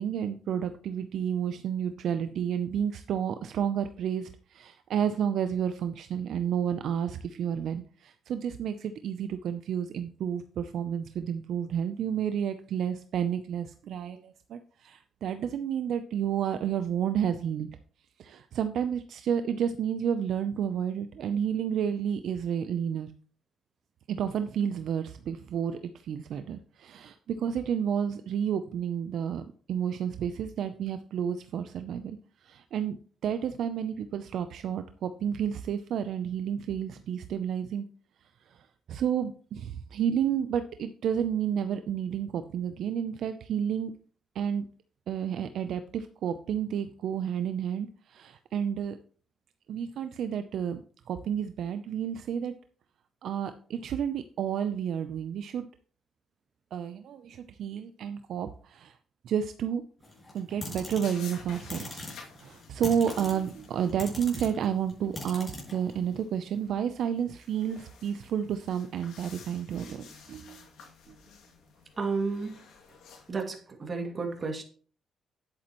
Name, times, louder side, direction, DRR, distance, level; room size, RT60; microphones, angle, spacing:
voice 1, 0.0-17.8 18.2-23.1 24.1-33.0 33.2-37.8 38.5-43.9 44.3-44.7 45.1-49.0 49.7-52.5 53.2-55.7 56.7-59.0 59.2-59.8 60.3-62.0 62.4-70.6 71.1-71.2, right 8 dB, 70° right, 9 dB, 0.6 m, -31 dB
sound 1, 60.0-66.1, left 2 dB, 30° left, 5.6 m, -42 dB
sound 2, 61.0-73.3, left 5 dB, 85° left, 2.4 m, -52 dB
voice 2, 72.0-72.7 73.3-74.6, right 4 dB, 35° right, 3 dB, 2.3 m, -32 dB
10.5 x 8.5 x 3.0 m, 0.43 s
cardioid pair, 90°, 0 cm